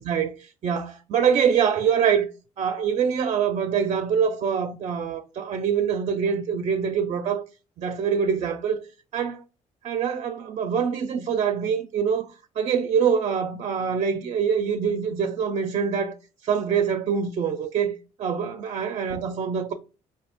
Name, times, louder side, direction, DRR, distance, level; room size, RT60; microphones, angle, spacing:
voice 1, 0.0-2.3 2.6-7.4 7.8-8.8 9.1-9.4 9.8-12.3 12.6-16.2 16.4-19.7, right 7 dB, 50° right, 0.4 m, -24 dB
4.2 x 2.7 x 3.4 m
cardioid pair, 105°, 13 cm